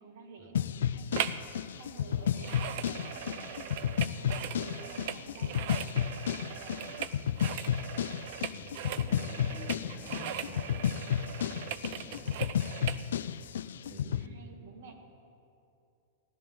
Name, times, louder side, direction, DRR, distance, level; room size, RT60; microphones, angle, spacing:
voice 1, 0.0-3.7 4.1-5.9 6.2-7.0 13.8-14.9, right 4 dB, 65° right, 3 dB, 1.9 m, -51 dB
sound 1, 0.5-14.3, left 9 dB, 90° left, 0.3 m, -32 dB
sound 2, 1.1-1.5 1.7-13.0 13.6-13.7, right 10 dB, 50° right, 0.5 m, -39 dB
voice 2, 6.8-7.5 8.5-11.1 11.5-12.5 13.9-14.5, left 2 dB, 5° left, -2 dB, 1.7 m, -49 dB
15.5 x 12.0 x 3.8 m, 2.6 s
supercardioid pair, 160°, 0 cm